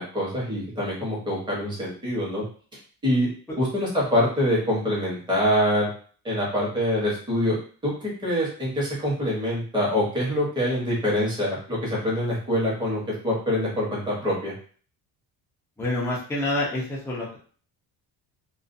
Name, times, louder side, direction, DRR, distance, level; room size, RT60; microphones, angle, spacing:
voice 1, 0.0-2.4 3.0-3.3 3.6-5.9 6.2-7.6 7.8-14.5, equal, 10° right, -6 dB, 1.0 m, -25 dB
voice 2, 15.8-17.4, left 1 dB, 5° left, -5 dB, 0.5 m, -27 dB
2.4 x 2.3 x 2.5 m, 0.43 s
cardioid pair, 170°, 38 cm